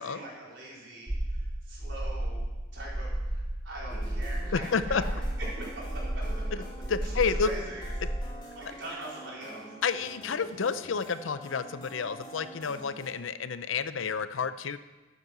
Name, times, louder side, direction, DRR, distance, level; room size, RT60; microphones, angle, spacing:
voice 1, 0.0-2.5 2.7-6.4 7.0-7.9 8.5-9.7, right 1 dB, 70° right, -5 dB, 4.3 m, -42 dB
sound 1, 1.1-8.3, right 1 dB, 10° right, 0.5 m, -33 dB
sound 2, 3.9-13.1, equal, 25° left, 2.4 m, -46 dB
voice 2, 4.5-5.0 6.9-7.5 9.8-14.8, left 5 dB, 85° left, 13 dB, 0.6 m, -30 dB
12.5 x 8.3 x 6.1 m, 1.2 s
head